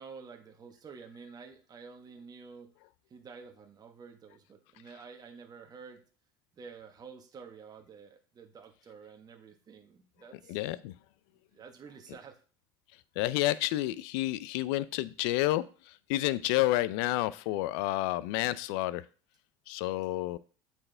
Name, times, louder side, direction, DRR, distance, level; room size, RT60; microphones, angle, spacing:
voice 1, 0.0-2.7 3.1-6.0 6.6-10.6 11.5-12.4, right 5 dB, 30° right, 4 dB, 1.2 m, -50 dB
voice 2, 10.5-10.9 13.2-19.0 19.7-20.4, left 16 dB, 80° left, 17 dB, 0.4 m, -30 dB
8.5 x 4.4 x 3.3 m, 0.38 s
supercardioid pair, 100°, 12 cm